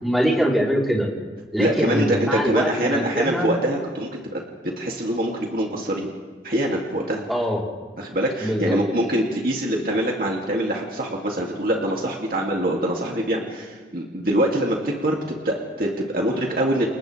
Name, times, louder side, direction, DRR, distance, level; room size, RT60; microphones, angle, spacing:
voice 1, 0.0-1.1 1.5-3.5 7.3-7.7 8.4-8.8, equal, ahead, -3 dB, 3.8 m, -23 dB
voice 2, 1.6-4.4 4.8-6.1 6.4-7.2 8.0-16.9, right 1 dB, 55° right, -1 dB, 2.7 m, -24 dB
30.0 x 29.0 x 3.4 m, 1.4 s
head